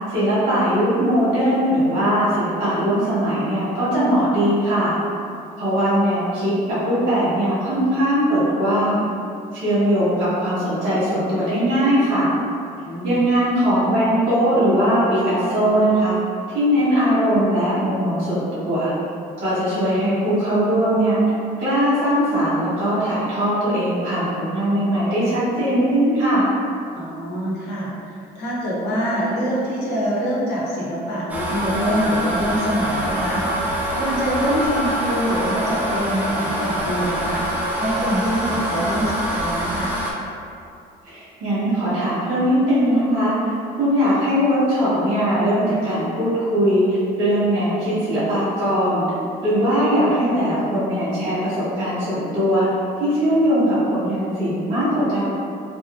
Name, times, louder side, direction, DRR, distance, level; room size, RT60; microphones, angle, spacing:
voice 1, 0.1-4.9 5.6-9.1 9.5-12.3 13.0-16.2 16.5-18.9 19.4-21.2 21.6-26.5 41.0-49.1 49.4-52.7 53.0-55.2, equal, 85° right, -12 dB, 1.5 m, -20 dB
voice 2, 12.8-13.2 27.0-40.0, equal, 90° left, -6 dB, 0.8 m, -25 dB
sound 1, 31.3-40.1, right 1 dB, 10° right, 0.5 m, -25 dB
3.0 x 2.6 x 2.5 m, 2.5 s
cardioid pair, 110°, 17 cm